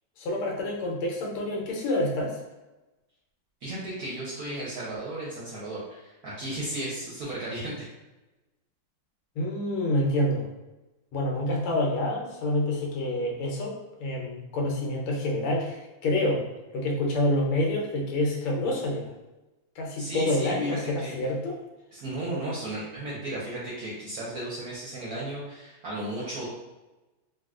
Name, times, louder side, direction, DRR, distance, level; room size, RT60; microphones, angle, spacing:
voice 1, 0.2-2.4 9.4-10.5 11.1-16.4 16.7-19.1 19.8-21.5, left 1 dB, 90° left, -1 dB, 1.7 m, -27 dB
voice 2, 3.6-7.8 20.0-21.1 21.9-26.5, right 1 dB, 65° right, -7 dB, 0.9 m, -35 dB
3.9 x 2.3 x 2.4 m, 1.1 s
omnidirectional pair, 2.3 m